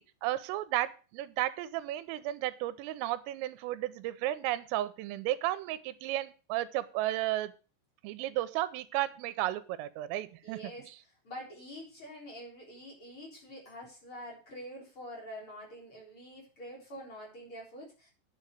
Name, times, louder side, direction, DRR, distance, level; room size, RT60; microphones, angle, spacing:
voice 1, 0.0-7.5 8.0-10.7, right 15 dB, 90° right, 14 dB, 3.4 m, -33 dB
voice 2, 10.4-10.9 11.2-18.1, equal, 30° left, -1 dB, 4.2 m, -46 dB
9.7 x 7.2 x 6.5 m, 0.34 s
omnidirectional pair, 5.8 m